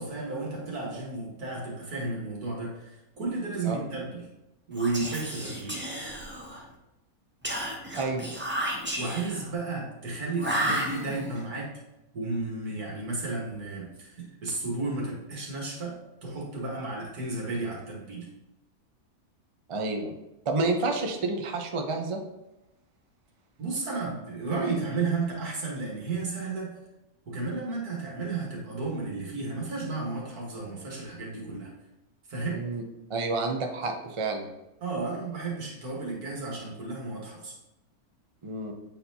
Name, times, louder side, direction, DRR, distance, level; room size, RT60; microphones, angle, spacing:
voice 1, 0.0-4.3 4.7-5.8 9.0-11.7 12.1-16.0 16.2-18.3 23.6-26.7 27.3-31.7 32.3-32.6 34.8-37.6, right 3 dB, 80° right, -3 dB, 2.1 m, -33 dB
Whispering, 4.7-6.7 7.4-9.5 10.4-11.4, right 1 dB, 10° right, 0.7 m, -32 dB
voice 2, 8.0-8.3 19.7-20.1 20.5-22.2 32.5-32.8 33.1-34.5 38.4-38.7, right 3 dB, 40° right, 3 dB, 0.4 m, -29 dB
8.5 x 4.2 x 2.8 m, 0.94 s
omnidirectional pair, 1.6 m